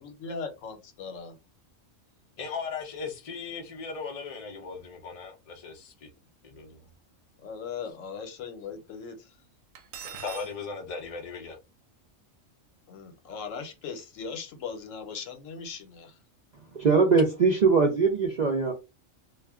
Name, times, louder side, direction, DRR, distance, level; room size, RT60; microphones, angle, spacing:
voice 1, 0.0-1.4 7.4-9.3 12.9-16.2, left 5 dB, 75° left, 1.0 m, -39 dB
voice 2, 2.4-6.1 6.4-6.8 10.2-11.6, left 5 dB, 60° left, 0.3 m, -37 dB
Cutlery silverware, 9.7-10.5, right 7 dB, 85° right, 1.0 m, -41 dB
voice 3, 16.7-18.7, right 4 dB, 60° right, 0.4 m, -21 dB
2.3 x 2.2 x 3.5 m
omnidirectional pair, 1.4 m